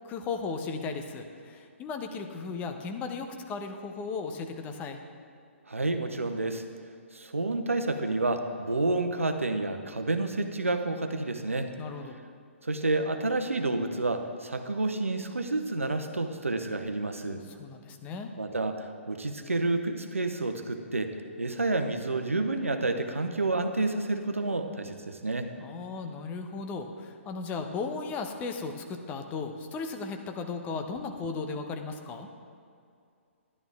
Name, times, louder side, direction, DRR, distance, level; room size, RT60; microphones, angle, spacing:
voice 1, 0.0-5.0 11.8-12.2 17.6-18.3 25.6-32.3, left 4 dB, 20° left, 5 dB, 0.8 m, -36 dB
voice 2, 5.7-6.6 7.1-11.7 12.6-17.4 18.4-21.1 21.4-25.5, right 2 dB, 85° right, 7 dB, 0.8 m, -29 dB
11.0 x 11.0 x 3.5 m, 2.4 s
figure-of-eight pair, 125°, 7 cm